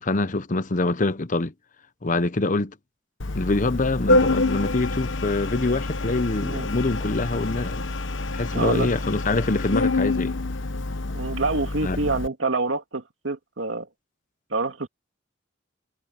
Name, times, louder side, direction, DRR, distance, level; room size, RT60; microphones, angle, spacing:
voice 1, 0.0-1.5 2.0-2.7 3.3-7.9 8.3-10.4 11.8-12.0, left 2 dB, 40° left, 0.9 m, -25 dB
Organ, 3.2-12.3, left 2 dB, 75° left, 1.1 m, -26 dB
voice 2, 8.5-8.9 11.1-13.9 14.5-14.9, right 3 dB, 80° right, 2.7 m, -27 dB
head